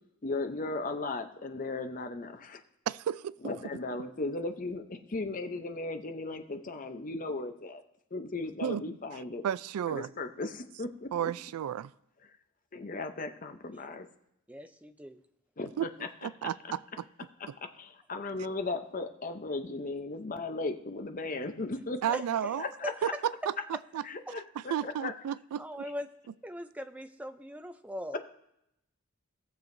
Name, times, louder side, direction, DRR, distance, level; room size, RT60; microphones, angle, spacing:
voice 1, 0.2-2.6 3.4-7.8 8.1-9.4 9.9-11.3 12.7-14.1 15.6-16.1 16.6-16.7 17.4-22.0 22.6-23.1 24.0-25.1, left 3 dB, 40° left, 0.6 m, -36 dB
voice 2, 2.9-3.3 8.6-8.8 9.4-10.1 11.1-11.9 15.8-15.9 16.2-17.0 22.0-22.7 23.0-23.5 23.9-24.0 24.6-25.6, right 9 dB, 90° right, 0.3 m, -32 dB
voice 3, 14.5-15.2 22.1-22.6 22.8-22.9 24.3-24.4 24.8-24.9 25.6-26.1 26.4-28.2, equal, 5° right, 0.4 m, -40 dB
18.5 x 7.0 x 2.6 m
head